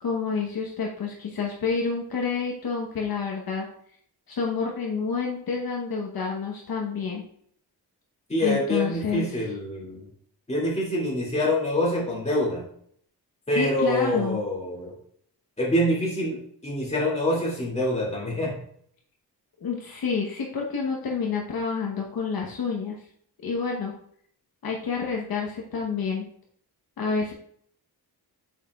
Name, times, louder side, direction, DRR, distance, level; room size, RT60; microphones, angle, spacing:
voice 1, 0.0-3.7 4.3-7.2 8.4-9.4 13.5-14.4 19.6-23.0 23.4-23.9 24.6-26.3 27.0-27.3, left 5 dB, 60° left, -1 dB, 1.0 m, -28 dB
voice 2, 8.3-10.1 10.5-12.6 13.5-14.9 15.6-18.5, left 1 dB, 15° left, -5 dB, 2.3 m, -25 dB
8.4 x 5.7 x 2.3 m, 0.64 s
wide cardioid pair, 155°, 40 cm